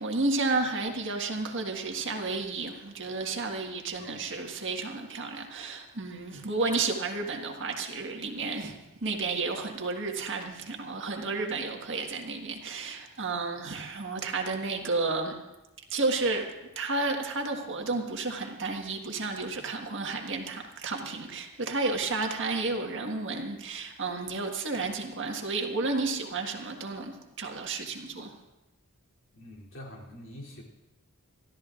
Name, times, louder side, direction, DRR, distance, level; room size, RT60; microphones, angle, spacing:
voice 1, 0.0-8.8 9.0-15.3 15.9-16.5 16.7-28.3, right 3 dB, 55° right, 2 dB, 1.6 m, -32 dB
voice 2, 4.0-4.4 29.3-30.6, left 1 dB, 60° left, -3 dB, 3.2 m, -46 dB
25.5 x 14.0 x 2.5 m, 1.0 s
head